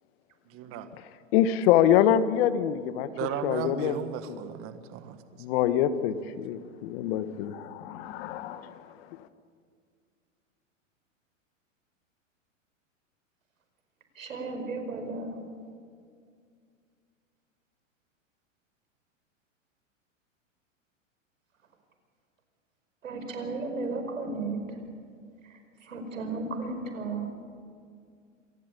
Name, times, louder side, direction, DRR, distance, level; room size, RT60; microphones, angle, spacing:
voice 1, 0.5-0.9 3.2-5.2, right 9 dB, 35° right, 9 dB, 1.5 m, -35 dB
voice 2, 1.3-3.1 3.4-3.9 4.3-4.4 5.4-8.7, left 10 dB, 50° left, 13 dB, 1.4 m, -25 dB
voice 3, 14.1-15.4 23.0-24.8 25.5-27.3, right 3 dB, 90° right, 6 dB, 5.1 m, -34 dB
26.5 x 18.5 x 8.4 m, 2.2 s
hypercardioid pair, 130°, 38 cm